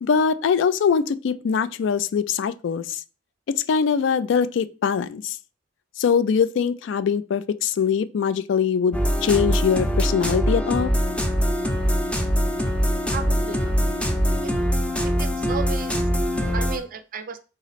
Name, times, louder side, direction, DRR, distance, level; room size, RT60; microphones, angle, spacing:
voice 1, 0.0-3.0 3.7-5.4 6.0-10.9, left 6 dB, 70° left, 0.3 m, -22 dB
sound 1, 8.9-16.8, equal, 5° left, 0.6 m, -23 dB
voice 2, 13.1-13.7 14.4-14.5 15.0-16.1 16.5-17.4, right 5 dB, 50° right, 0.5 m, -34 dB
3.8 x 3.1 x 4.1 m
head